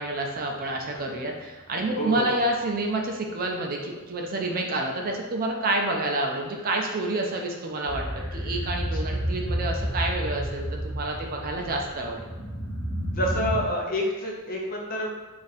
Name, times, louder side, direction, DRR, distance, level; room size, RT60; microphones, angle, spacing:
voice 1, 0.0-8.1 8.3-12.3, right 2 dB, 40° right, 1 dB, 0.4 m, -28 dB
voice 2, 2.0-2.3 13.1-15.1, equal, 40° left, -1 dB, 0.6 m, -28 dB
sound 1, 7.9-13.6, equal, 15° left, 1.5 m, -31 dB
2.6 x 2.5 x 4.0 m, 1.1 s
head